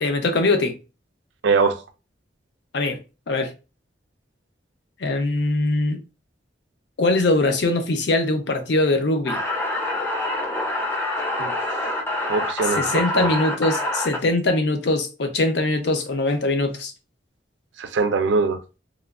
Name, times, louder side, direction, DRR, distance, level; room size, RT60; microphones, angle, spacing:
voice 1, 0.0-0.7 2.7-3.0 3.3-3.5 5.0-6.0 7.0-9.4 12.8-16.9, left 2 dB, 65° left, 0.5 m, -22 dB
voice 2, 1.4-1.8 11.4-11.6 12.3-13.3 17.8-18.6, right 4 dB, 80° right, 0.4 m, -22 dB
sound 1, 9.3-14.2, left 1 dB, 10° left, 0.5 m, -26 dB
3.0 x 2.2 x 2.3 m
head